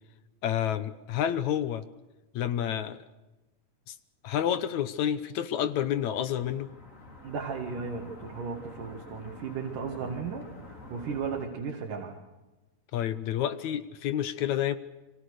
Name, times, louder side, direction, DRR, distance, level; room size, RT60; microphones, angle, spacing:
voice 1, 0.4-1.8 2.4-3.0 3.9-4.0 4.2-6.7 12.9-14.8, left 10 dB, 70° left, 13 dB, 2.2 m, -29 dB
sound 1, 5.9-11.5, left 2 dB, 25° left, 3.6 m, -48 dB
voice 2, 7.2-12.2, right 5 dB, 75° right, 1 dB, 3.8 m, -35 dB
29.0 x 24.0 x 6.6 m, 1.1 s
omnidirectional pair, 3.7 m